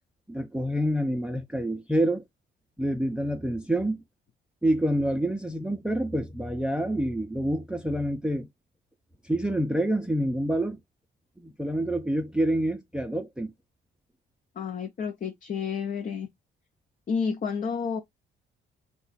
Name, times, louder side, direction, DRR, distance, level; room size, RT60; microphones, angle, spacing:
voice 1, 0.3-2.2 2.8-4.0 4.6-8.5 9.2-10.8 11.4-13.5, right 1 dB, 5° right, 0.5 m, -27 dB
voice 2, 14.6-16.3 17.1-18.0, left 6 dB, 40° left, 0.6 m, -30 dB
3.0 x 2.3 x 4.1 m
cardioid pair, 90°, 20 cm